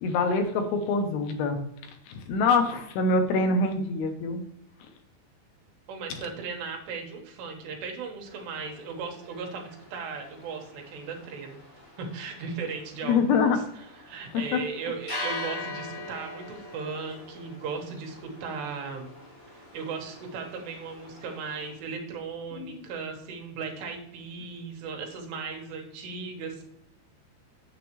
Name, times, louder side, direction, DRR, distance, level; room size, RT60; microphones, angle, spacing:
voice 1, 0.0-1.6 2.1-4.4 13.0-13.6 14.3-14.6 22.6-22.8, left 3 dB, 80° left, 6 dB, 2.6 m, -25 dB
voice 2, 5.9-11.6 12.0-13.4 14.1-19.1 19.7-26.6, right 5 dB, 75° right, 2 dB, 3.1 m, -37 dB
sound 1, 8.3-21.7, left 2 dB, 30° left, 3.1 m, -43 dB
7.0 x 6.9 x 3.0 m, 0.78 s
omnidirectional pair, 5.1 m